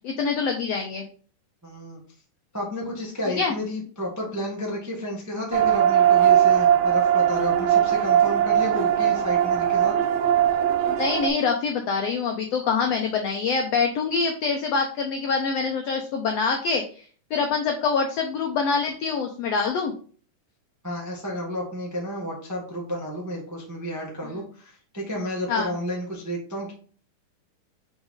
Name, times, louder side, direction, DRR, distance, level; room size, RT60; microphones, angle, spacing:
voice 1, 0.0-1.1 3.4-3.5 10.9-17.1 17.3-19.9 25.5-25.7, left 5 dB, 85° left, 4 dB, 1.4 m, -25 dB
voice 2, 1.6-2.0 2.5-9.9 20.8-26.7, equal, 25° right, -3 dB, 0.3 m, -31 dB
sound 1, 5.5-11.3, right 10 dB, 80° right, 1.4 m, -20 dB
5.3 x 4.7 x 3.7 m, 0.42 s
omnidirectional pair, 3.8 m